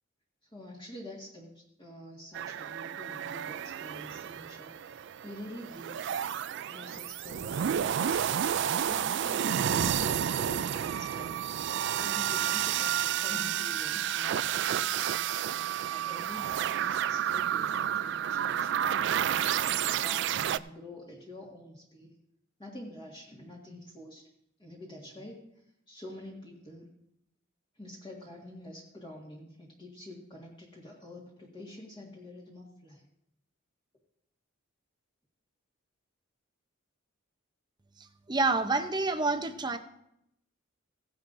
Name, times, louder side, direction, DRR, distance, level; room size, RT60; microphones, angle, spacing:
voice 1, 0.5-6.0 6.7-22.1 22.6-24.3 24.6-25.4 25.9-26.9 27.8-33.0, left 1 dB, 20° left, -4 dB, 1.8 m, -47 dB
sound 1, 2.3-20.6, right 10 dB, 55° right, 0.3 m, -31 dB
voice 2, 38.3-39.8, right 3 dB, 20° right, 7 dB, 0.7 m, -28 dB
16.5 x 10.5 x 2.6 m, 0.78 s
head